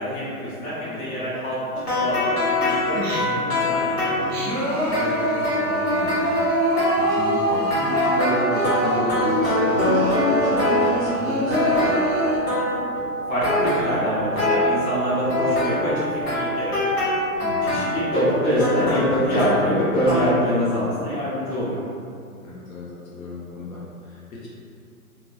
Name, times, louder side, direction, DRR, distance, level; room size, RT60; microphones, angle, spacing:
voice 1, 0.0-4.3 13.3-17.0 17.6-21.8, equal, 25° left, -10 dB, 1.0 m, -25 dB
voice 2, 0.7-1.3 4.9-6.4 6.9-12.0 17.4-17.8 22.4-24.5, left 1 dB, 65° left, -6 dB, 0.9 m, -33 dB
sound 1, 1.7-11.2 11.5-13.0 13.4-14.7 15.2-20.2, left 1 dB, 45° left, 1.2 m, -24 dB
Singing, 2.9-3.5 4.0-12.4, right 1 dB, 45° right, 0.9 m, -25 dB
sound 2, 8.3-18.3, right 3 dB, 15° right, 0.7 m, -32 dB
3.1 x 2.6 x 2.2 m, 2.4 s
hypercardioid pair, 130°, 44 cm